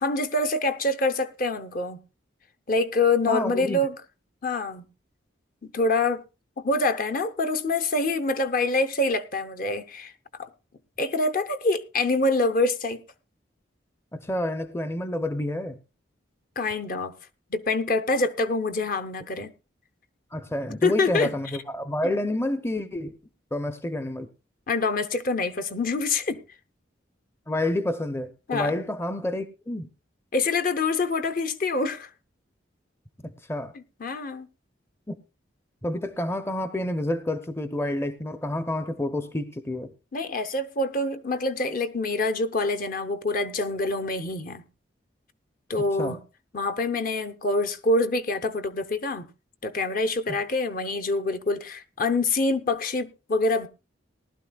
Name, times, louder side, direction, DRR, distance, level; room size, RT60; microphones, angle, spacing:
voice 1, 0.0-2.0 2.7-4.0 4.4-4.9 5.6-6.2 6.6-10.1 10.4-10.5 11.0-13.0 16.6-17.1 17.5-19.5 20.8-21.3 24.7-26.4 28.5-28.7 30.3-32.1 34.0-34.5 40.1-44.6 45.7-46.2 46.5-49.3 49.6-53.7, left 2 dB, 45° left, 0.7 m, -25 dB
voice 2, 3.3-3.8 14.1-15.8 20.3-23.1 23.5-24.3 27.5-29.9 33.2-33.7 35.1-35.2 35.8-39.9 45.8-46.2 50.3-50.4, left 1 dB, 15° left, 0.5 m, -29 dB
19.0 x 12.0 x 2.3 m
head